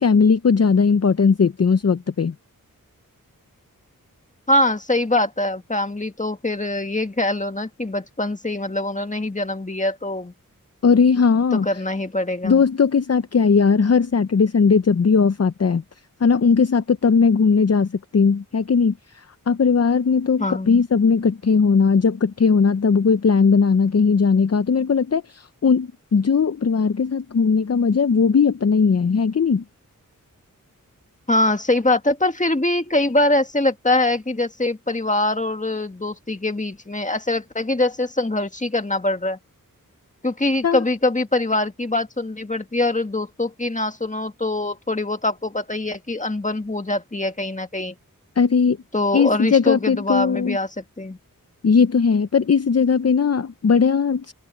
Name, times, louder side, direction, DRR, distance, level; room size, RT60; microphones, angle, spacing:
voice 1, 0.0-2.3 10.8-11.7 12.4-15.8 16.2-29.6 40.6-40.8 48.4-48.8 49.1-50.6 51.6-54.3, left 5 dB, 45° left, 0.7 m, -18 dB
voice 2, 4.5-10.3 11.5-12.6 20.4-20.8 31.3-39.4 40.2-47.9 48.9-51.2, left 2 dB, 20° left, 1.9 m, -23 dB
wide cardioid pair, 50°, 34 cm